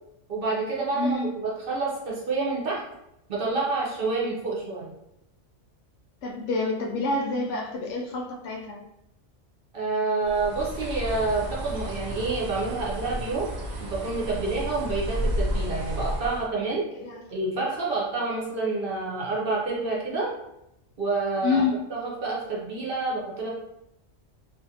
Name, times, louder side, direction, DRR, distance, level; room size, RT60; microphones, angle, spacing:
voice 1, 0.3-2.8 3.3-4.9 9.7-13.5 13.8-16.8 17.3-20.3 21.0-21.6 21.9-23.5, right 3 dB, 55° right, -4 dB, 0.8 m, -28 dB
voice 2, 1.0-1.3 6.2-8.8 17.0-17.3 21.4-21.8, left 3 dB, 75° left, 1 dB, 0.9 m, -27 dB
Bird, 10.2-16.5, equal, 75° right, 0.4 m, -32 dB
2.5 x 2.5 x 2.7 m, 0.86 s
omnidirectional pair, 1.3 m